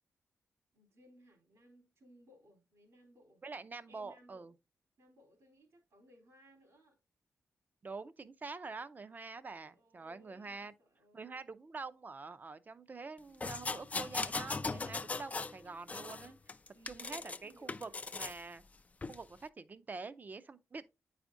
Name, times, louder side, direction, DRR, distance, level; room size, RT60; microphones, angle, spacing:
voice 1, 0.7-3.4 3.9-4.5 5.0-7.0 9.5-11.4 16.7-18.0 20.7-20.8, equal, 75° right, 3.2 m, -63 dB
voice 2, 3.4-4.5 7.8-10.7 11.1-16.4 16.9-18.6 19.1-20.8, right 4 dB, 35° right, 0.5 m, -46 dB
sound 1, 13.4-15.6 15.9-17.4 17.7-18.4 19.0-19.2, left 3 dB, 30° left, 0.3 m, -39 dB
8.9 x 4.9 x 2.6 m
wide cardioid pair, 105°, 5 cm